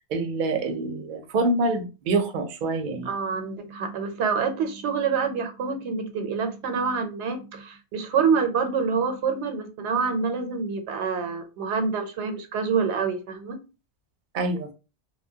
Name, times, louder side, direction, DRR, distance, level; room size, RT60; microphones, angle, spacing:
voice 1, 0.1-3.1 14.3-14.7, right 2 dB, 55° right, 5 dB, 0.6 m, -26 dB
voice 2, 3.0-13.6, right 5 dB, 90° right, 7 dB, 0.9 m, -26 dB
2.9 x 2.1 x 2.7 m, 0.31 s
omnidirectional pair, 1.1 m